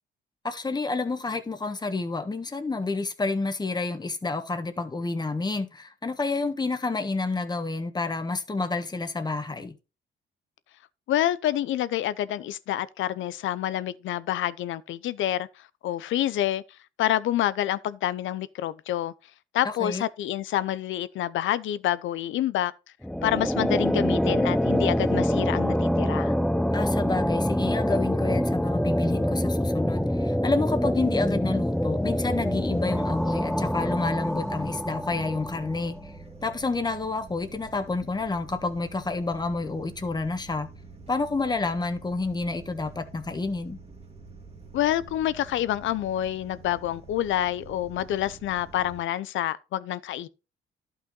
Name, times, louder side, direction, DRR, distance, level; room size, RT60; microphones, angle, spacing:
voice 1, 0.4-9.7 19.6-20.0 26.7-36.1 36.4-40.7 41.1-43.8, left 3 dB, 20° left, 1.4 m, -29 dB
voice 2, 11.1-16.6 17.0-19.1 19.5-22.7 23.2-26.3 44.7-50.3, left 12 dB, 75° left, 0.7 m, -27 dB
sound 1, 23.0-36.2, equal, ahead, 0.4 m, -25 dB
sound 2, 33.0-49.0, right 4 dB, 30° right, 2.0 m, -47 dB
11.5 x 5.8 x 3.8 m
cardioid pair, 90°, 20 cm